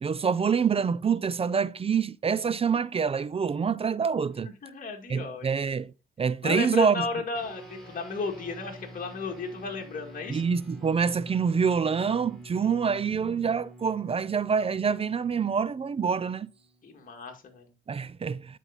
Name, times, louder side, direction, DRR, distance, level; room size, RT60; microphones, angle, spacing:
voice 1, 0.0-4.5 5.1-7.0 10.3-16.5 17.9-18.6, right 6 dB, 30° right, 0.4 m, -26 dB
voice 2, 4.6-5.8 6.4-10.4 16.8-17.7, left 4 dB, 45° left, 2.0 m, -34 dB
sound 1, 7.3-17.0, right 1 dB, ahead, 3.9 m, -48 dB
9.9 x 4.6 x 4.1 m
cardioid pair, 90°, 20 cm